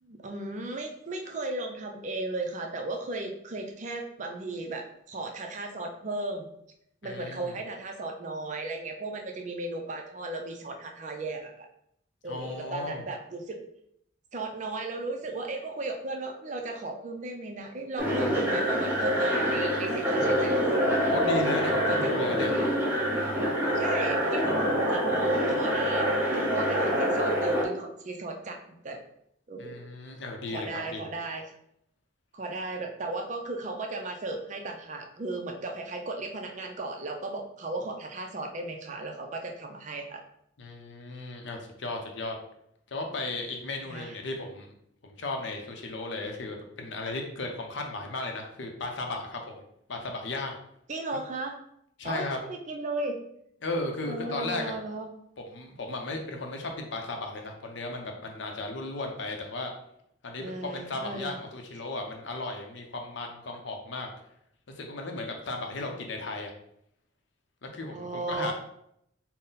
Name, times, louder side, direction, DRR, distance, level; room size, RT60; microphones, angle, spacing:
voice 1, 0.0-6.5 7.0-11.7 12.2-13.6 14.3-20.8 21.7-22.7 23.7-29.0 29.5-29.9 30.5-31.4 32.3-40.2 43.9-44.1 50.9-51.6 52.0-53.2 54.0-55.1 60.4-61.4 67.9-68.5, right 2 dB, 35° right, 3 dB, 0.5 m, -35 dB
voice 2, 7.0-7.5 12.3-13.0 21.1-22.5 29.6-31.1 40.6-42.4 42.9-44.7 45.0-49.4 49.9-50.6 52.0-52.4 53.6-54.8 55.4-59.7 60.2-64.1 64.8-66.5 67.6-68.5, left 2 dB, 65° left, 3 dB, 0.6 m, -35 dB
sound 1, 18.0-27.6, equal, 10° right, 0.8 m, -26 dB
3.9 x 2.1 x 3.9 m, 0.74 s
head